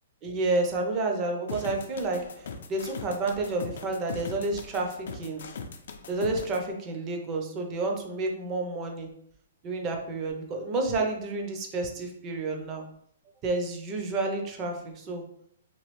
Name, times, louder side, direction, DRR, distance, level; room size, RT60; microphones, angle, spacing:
voice 1, 0.2-5.4 6.1-9.1 9.6-12.8 13.4-15.2, right 2 dB, 25° right, 2 dB, 0.5 m, -30 dB
sound 1, 1.5-6.6, left 4 dB, 65° left, 0.4 m, -39 dB
3.0 x 2.3 x 3.0 m, 0.69 s
hypercardioid pair, 160°, 0 cm